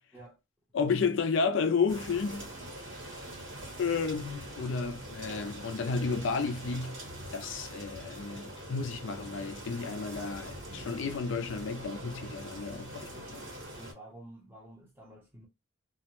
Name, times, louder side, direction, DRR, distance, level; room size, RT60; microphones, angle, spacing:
voice 1, 0.7-2.5 3.8-7.0 7.3-13.5, left 5 dB, 65° left, 0.4 m, -32 dB
sound 1, 1.9-13.9, right 1 dB, 65° right, 1.1 m, -43 dB
voice 2, 13.8-15.5, right 1 dB, 10° right, 0.6 m, -50 dB
2.3 x 2.1 x 2.9 m
head